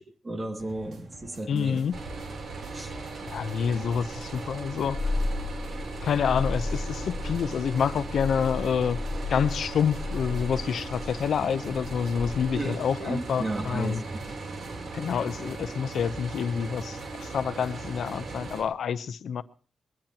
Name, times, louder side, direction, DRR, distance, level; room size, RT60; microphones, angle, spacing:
voice 1, 0.2-1.8 2.7-2.9 12.5-14.0, right 2 dB, 25° right, 4 dB, 2.1 m, -33 dB
sound 1, 0.6-18.7, right 3 dB, 70° right, 2.9 m, -49 dB
voice 2, 1.5-1.9 3.3-5.0 6.0-9.0 9.3-14.0 14.9-19.4, left 7 dB, 80° left, 13 dB, 0.8 m, -28 dB
sound 2, 1.9-18.6, right 3 dB, 55° right, 3.5 m, -38 dB
Purr, 4.8-12.9, left 2 dB, 35° left, 4.5 m, -34 dB
21.5 x 21.0 x 2.9 m, 0.40 s
wide cardioid pair, 175°, 0 cm